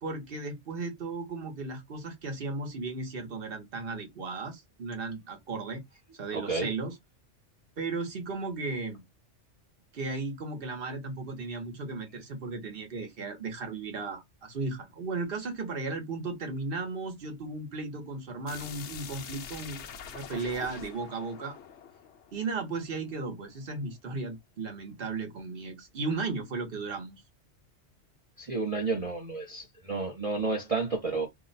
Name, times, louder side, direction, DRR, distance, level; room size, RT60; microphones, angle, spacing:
voice 1, 0.0-5.8 6.2-6.9 7.8-9.0 9.9-21.6 22.3-27.2, right 3 dB, 55° right, 1.1 m, -35 dB
voice 2, 6.3-6.7 28.4-31.3, right 3 dB, 35° right, 0.7 m, -31 dB
sound 1, 18.5-23.2, left 7 dB, 75° left, 0.9 m, -45 dB
2.7 x 2.1 x 3.9 m
omnidirectional pair, 1.2 m